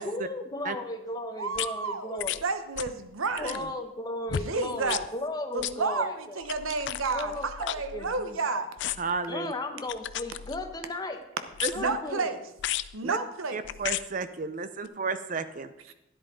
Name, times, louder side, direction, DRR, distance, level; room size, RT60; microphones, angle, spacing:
voice 1, 0.0-2.4 3.4-6.4 7.1-8.4 9.3-11.2 11.7-12.3, left 1 dB, 20° left, 5 dB, 0.9 m, -35 dB
voice 2, 1.4-3.7 4.4-5.0 5.5-8.7 11.7-12.4 12.9-13.6 15.9-16.0, right 4 dB, 75° right, 10 dB, 0.9 m, -31 dB
sound 1, 1.5-1.7 2.2-2.4 2.8-3.0 3.3-3.7 4.3-4.5 4.9-5.1 5.6-5.7 6.4-8.4 8.8-9.2 9.9-10.8 11.5-12.0 12.6-12.9 13.6-14.0 14.8-14.9, left 11 dB, 55° left, 0.4 m, -34 dB
voice 3, 9.0-9.5 11.6-12.0 13.0-13.2 13.5-15.7, right 4 dB, 40° right, 12 dB, 0.5 m, -32 dB
12.5 x 10.5 x 3.7 m, 0.90 s
head